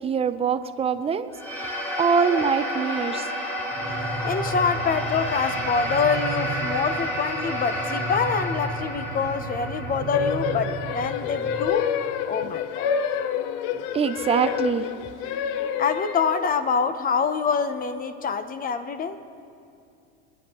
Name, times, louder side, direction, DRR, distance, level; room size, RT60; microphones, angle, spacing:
voice 1, 0.0-1.3 2.0-3.3 13.7-14.9 15.2-15.3, right 6 dB, 20° right, 10 dB, 0.5 m, -24 dB
sound 1, 1.3-11.9, equal, 5° left, 2.9 m, -31 dB
sound 2, 3.7-11.7, right 3 dB, 65° right, 1.5 m, -34 dB
voice 2, 4.0-11.9 12.2-12.9 15.8-19.2, left 5 dB, 25° left, 11 dB, 0.6 m, -26 dB
sound 3, 10.1-16.7, left 8 dB, 65° left, 0.7 m, -28 dB
25.5 x 10.0 x 3.0 m, 2.5 s
supercardioid pair, 120°, 32 cm